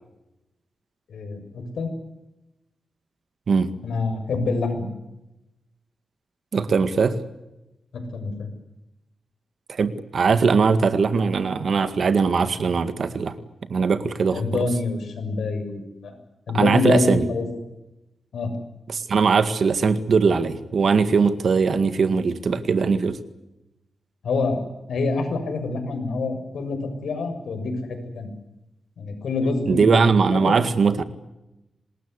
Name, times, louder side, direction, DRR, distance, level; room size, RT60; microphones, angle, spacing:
voice 1, 1.1-1.9 3.8-4.9 7.9-8.5 14.3-16.1 16.5-17.4 18.3-18.5 24.2-28.3 29.0-30.6, left 3 dB, 90° left, 6 dB, 7.1 m, -26 dB
voice 2, 6.5-7.2 9.7-13.4 13.7-14.6 16.5-17.3 18.9-23.2 29.7-31.0, right 5 dB, 50° right, 11 dB, 1.9 m, -20 dB
26.5 x 20.0 x 8.2 m, 0.93 s
wide cardioid pair, 180°, 0 cm